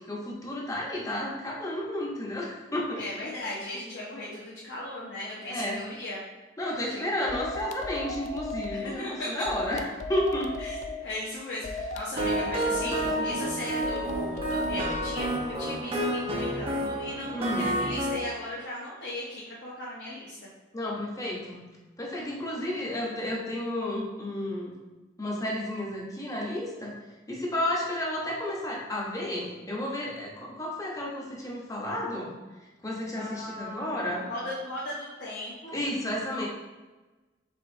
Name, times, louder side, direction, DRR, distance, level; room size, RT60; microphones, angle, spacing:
voice 1, 0.0-3.0 5.5-5.8 6.6-9.8 10.1-10.5 12.8-13.3 17.3-17.7 20.7-21.6 22.0-24.7 25.2-26.9 27.3-32.3 32.8-34.3 35.7-36.5, left 1 dB, 20° left, -3 dB, 0.8 m, -32 dB
voice 2, 2.9-6.2 6.9-7.1 8.7-9.5 10.6-20.5 33.1-35.8, left 1 dB, 75° left, -7 dB, 0.9 m, -37 dB
sound 1, 7.3-8.8 9.5-11.0 11.6-13.2 13.8-15.3, left 3 dB, 40° left, 0.3 m, -36 dB
sound 2, 12.2-18.2, right 1 dB, 35° right, 0.7 m, -29 dB
5.0 x 3.6 x 2.6 m, 1.2 s
head